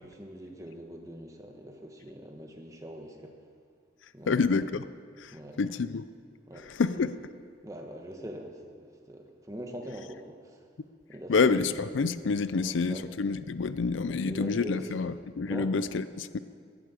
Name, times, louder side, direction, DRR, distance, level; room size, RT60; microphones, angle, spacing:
voice 1, 0.0-3.3 4.1-4.7 5.3-5.8 6.5-7.1 7.6-10.7 11.1-11.6 12.5-13.1 14.0-15.0 15.5-15.8, equal, 15° right, 3 dB, 1.4 m, -43 dB
voice 2, 4.3-4.8 5.2-6.1 6.5-7.2 11.3-16.4, left 4 dB, 80° left, 14 dB, 0.5 m, -28 dB
11.5 x 11.5 x 8.3 m, 2.1 s
head